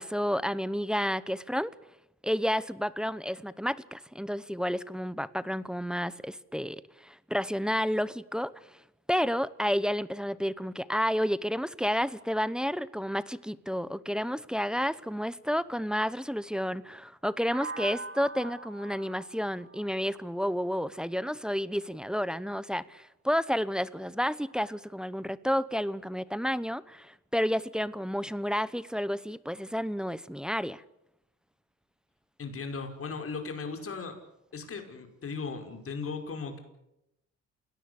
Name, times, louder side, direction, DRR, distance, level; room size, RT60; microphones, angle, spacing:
voice 1, 0.0-1.7 2.2-8.5 9.1-30.8, equal, 5° right, 0.9 m, -31 dB
sound 1, 17.5-21.4, right 3 dB, 45° right, 4.2 m, -43 dB
voice 2, 32.4-34.1 34.5-36.6, left 4 dB, 45° left, 5.3 m, -37 dB
28.5 x 18.0 x 8.4 m
cardioid pair, 90°, 30 cm